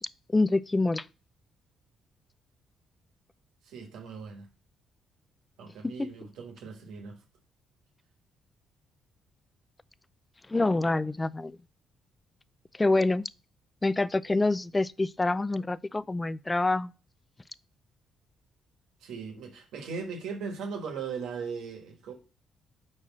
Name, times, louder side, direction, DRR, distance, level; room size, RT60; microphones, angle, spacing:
voice 1, 0.3-1.0 5.8-6.1 10.5-11.6 12.8-13.2 13.8-16.9, left 2 dB, 20° left, 0.3 m, -26 dB
voice 2, 3.6-4.5 5.6-7.2 19.0-22.1, right 5 dB, 85° right, 1.3 m, -38 dB
4.7 x 4.3 x 6.0 m
cardioid pair, 90°, 0 cm